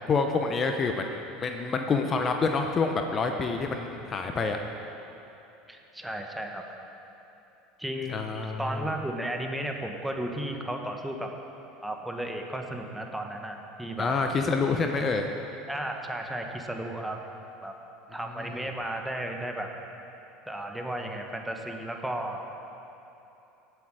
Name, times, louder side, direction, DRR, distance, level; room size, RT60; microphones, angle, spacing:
voice 1, 0.1-4.6 8.1-8.8 14.0-15.3 18.4-18.5, left 4 dB, 35° left, 5 dB, 0.8 m, -27 dB
voice 2, 5.7-6.6 7.8-11.3 11.8-14.1 15.7-17.2 17.6-17.7 18.1-19.7 20.5-22.4, right 1 dB, 5° right, 2 dB, 1.4 m, -34 dB
18.0 x 8.1 x 4.9 m, 3.0 s
hypercardioid pair, 85°, 0 cm